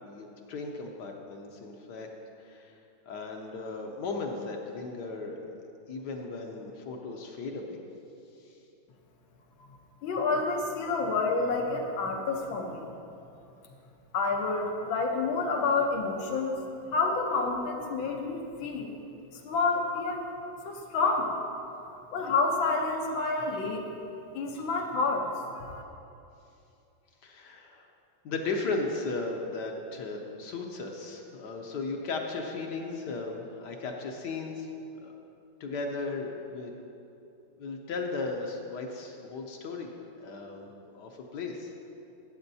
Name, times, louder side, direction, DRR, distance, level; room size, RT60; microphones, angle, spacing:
voice 1, 0.0-2.1 2.4-2.8 3.1-5.4 5.9-7.8 8.4-8.5 27.2-27.9 28.2-34.7 35.0-35.1 35.6-36.7 37.6-39.9 40.2-40.7 40.9-41.7, left 3 dB, 70° left, 2 dB, 1.2 m, -36 dB
voice 2, 10.0-12.8 14.1-16.6 16.9-18.9 19.4-20.2 20.6-21.4 22.1-23.8 24.3-25.3 25.6-25.8, left 3 dB, 85° left, 1 dB, 1.7 m, -28 dB
13.0 x 7.7 x 2.7 m, 2.7 s
omnidirectional pair, 2.1 m